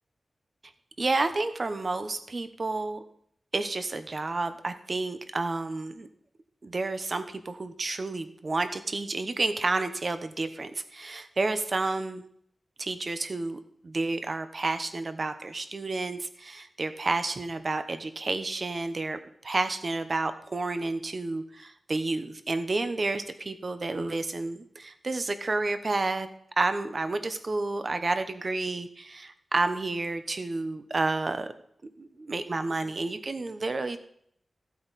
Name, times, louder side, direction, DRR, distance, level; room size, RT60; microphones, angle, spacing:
voice 1, 1.0-3.0 3.5-6.1 6.6-12.2 12.8-19.2 19.4-26.3 26.6-31.5 32.0-34.0, right 3 dB, 40° right, 9 dB, 1.0 m, -30 dB
15.0 x 8.5 x 4.2 m, 0.67 s
wide cardioid pair, 130°, 0 cm